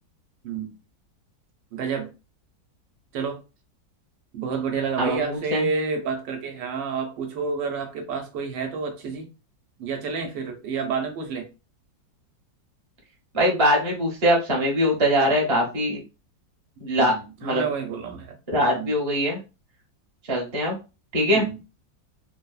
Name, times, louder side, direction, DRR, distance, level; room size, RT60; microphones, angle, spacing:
voice 1, 1.7-2.1 3.1-3.4 4.3-9.2 9.8-11.5 17.0-18.3 18.7-18.9 21.3-21.6, right 5 dB, 80° right, 1.3 m, -29 dB
voice 2, 5.0-5.7 13.3-16.0 16.8-17.1 17.4-17.6 18.5-19.4 20.3-20.8 21.1-21.4, equal, 30° right, 0.6 m, -22 dB
3.4 x 2.0 x 2.3 m
omnidirectional pair, 2.0 m